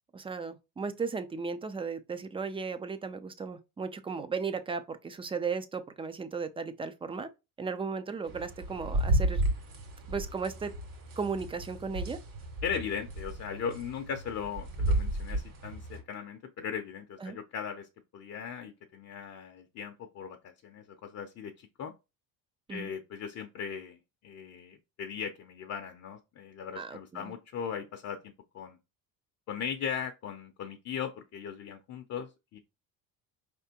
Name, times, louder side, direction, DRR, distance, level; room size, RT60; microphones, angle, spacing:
voice 1, 0.1-7.3 7.6-9.4 10.1-10.7 11.2-12.2 17.2-17.4 22.7-22.9 26.8-27.3, right 5 dB, 15° right, 0.3 m, -35 dB
sound 1, 8.3-16.0, right 1 dB, 55° right, 2.1 m, -33 dB
voice 2, 12.6-17.9 18.1-21.9 22.7-24.0 24.2-28.8 29.5-32.6, left 7 dB, 40° left, 0.6 m, -38 dB
4.8 x 3.4 x 2.8 m
cardioid pair, 125°, 40 cm